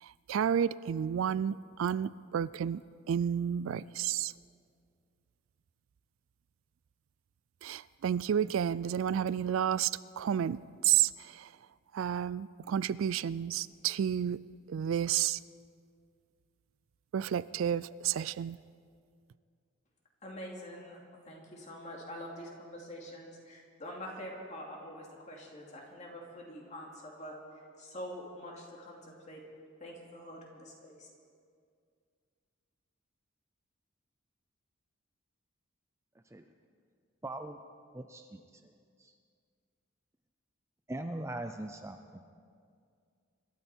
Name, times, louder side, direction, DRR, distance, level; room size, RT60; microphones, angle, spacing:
voice 1, 0.0-2.8 3.1-4.3 7.6-11.5 11.9-14.4 14.7-15.4 17.1-18.6, right 9 dB, 70° right, 19 dB, 0.3 m, -31 dB
voice 2, 20.2-27.4 27.8-29.4 29.8-31.1, equal, 35° left, -1 dB, 2.7 m, -45 dB
voice 3, 37.2-37.6 37.9-38.7 39.0-39.1 40.9-42.2, right 1 dB, 15° right, 6 dB, 0.5 m, -41 dB
25.5 x 12.5 x 4.5 m, 2.2 s
head